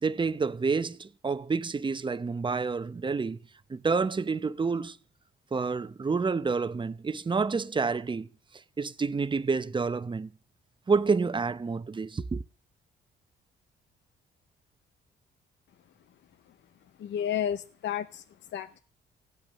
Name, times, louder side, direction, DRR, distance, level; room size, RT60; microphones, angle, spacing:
voice 1, 0.0-3.4 3.7-5.0 5.5-8.3 8.8-10.3 10.9-12.4, right 4 dB, 25° right, 0.8 m, -28 dB
voice 2, 17.0-18.2 18.5-18.8, left 9 dB, 65° left, 0.7 m, -31 dB
16.5 x 8.9 x 6.9 m
cardioid pair, 90°, 20 cm